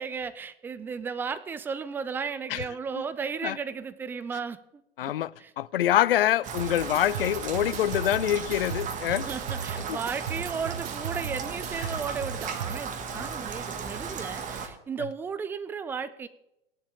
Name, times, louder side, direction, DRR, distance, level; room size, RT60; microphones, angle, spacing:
voice 1, 0.0-4.6 5.0-5.1 5.4-5.5 9.0-16.3, right 6 dB, 5° right, 0.3 m, -35 dB
voice 2, 5.0-5.3 5.6-9.3 9.9-10.0 13.1-13.2, left 12 dB, 65° left, 0.5 m, -25 dB
Rain, 6.4-14.7, right 6 dB, 25° right, 1.6 m, -36 dB
sound 1, 6.6-12.8, right 7 dB, 75° right, 0.7 m, -37 dB
16.5 x 10.5 x 3.4 m
figure-of-eight pair, 105°, 30 cm